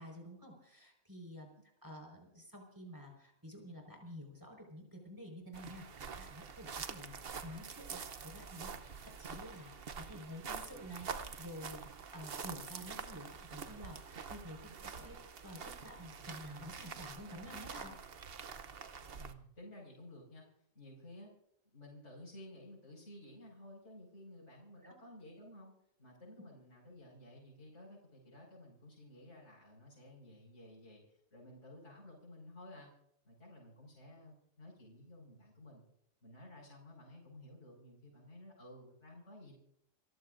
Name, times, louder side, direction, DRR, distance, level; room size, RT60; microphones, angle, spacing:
voice 1, 0.0-15.2 15.4-17.9 24.8-24.9, equal, 15° right, 2 dB, 4.9 m, -50 dB
sound 1, 5.5-19.3, right 6 dB, 50° right, 1.0 m, -46 dB
voice 2, 19.1-20.5 20.7-21.3 21.7-25.7 26.0-32.9 33.2-35.8 36.2-39.6, left 1 dB, 55° left, -6 dB, 5.7 m, -54 dB
28.5 x 15.0 x 2.6 m, 0.73 s
omnidirectional pair, 1.4 m